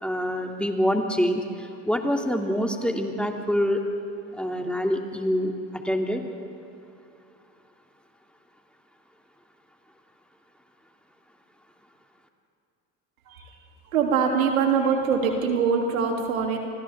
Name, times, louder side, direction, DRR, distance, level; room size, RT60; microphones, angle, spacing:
voice 1, 0.0-3.8 4.3-5.5 5.8-6.2, equal, 5° left, 2 dB, 2.5 m, -25 dB
voice 2, 13.9-16.6, right 6 dB, 85° right, 1 dB, 3.0 m, -23 dB
28.5 x 25.0 x 3.6 m, 2.6 s
hypercardioid pair, 70°, 40 cm